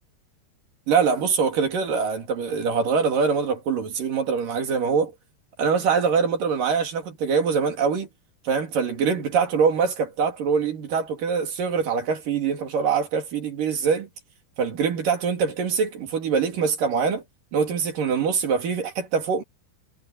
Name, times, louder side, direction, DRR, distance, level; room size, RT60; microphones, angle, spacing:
voice 1, 0.9-5.1 5.6-8.1 8.5-14.1 14.6-17.2 17.5-19.4, right 6 dB, 55° right, 4.1 m, -23 dB
omnidirectional pair, 4.9 m